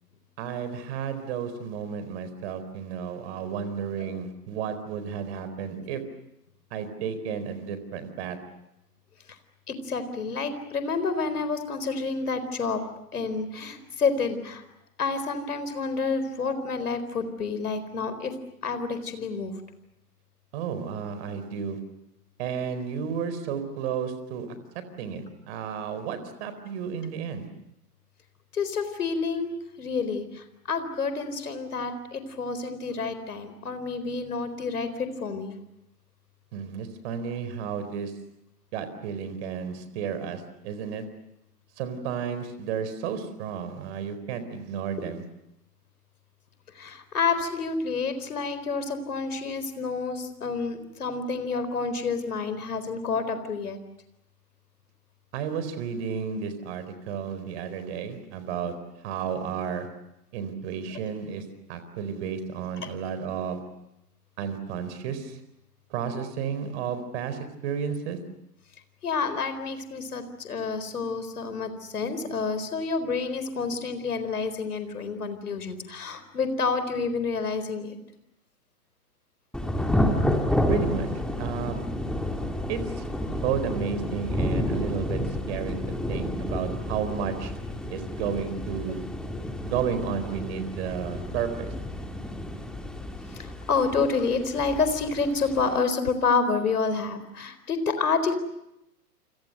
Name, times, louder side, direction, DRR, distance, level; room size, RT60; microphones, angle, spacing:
voice 1, 0.4-6.0 6.7-8.4 20.5-21.8 22.4-24.5 24.7-27.5 36.5-38.1 38.7-41.1 41.8-45.2 55.3-58.7 59.0-59.9 60.3-61.4 61.7-63.6 64.4-65.4 65.9-68.2 80.7-81.1 81.4-81.8 82.7-83.1 83.3-85.8 86.1-87.5 87.9-89.1 89.6-91.7, right 7 dB, 45° right, 11 dB, 4.3 m, -32 dB
voice 2, 9.7-12.8 13.1-14.6 15.0-18.3 18.6-19.5 28.5-35.5 46.7-53.8 69.0-78.0 86.5-86.8 87.1-87.2 88.9-89.0 93.3-98.4, left 4 dB, 70° left, 11 dB, 4.3 m, -29 dB
Thunder / Rain, 79.5-95.8, left 1 dB, ahead, 2.7 m, -30 dB
29.5 x 26.5 x 6.7 m, 0.85 s
figure-of-eight pair, 105°, 46 cm